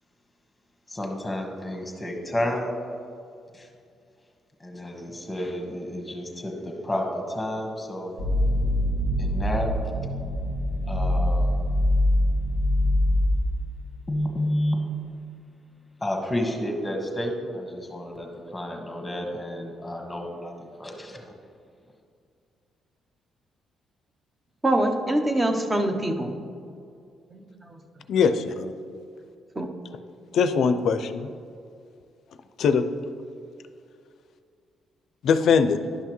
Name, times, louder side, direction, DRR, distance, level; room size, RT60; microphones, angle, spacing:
voice 1, 0.9-2.8 3.5-3.7 4.6-8.1 9.2-9.7 10.9-11.5 14.1-14.8 16.0-21.3, left 1 dB, 10° left, 2 dB, 1.4 m, -30 dB
sound 1, 8.2-13.4, left 1 dB, 85° right, 1.7 m, -23 dB
voice 2, 24.6-26.3 27.3-27.8 29.6-29.7, right 1 dB, 20° right, 5 dB, 0.8 m, -24 dB
voice 3, 28.1-28.7 30.3-31.3 32.6-32.8 35.2-35.8, left 6 dB, 70° left, 10 dB, 0.4 m, -21 dB
11.0 x 5.7 x 3.1 m, 2.4 s
cardioid pair, 90°, 0 cm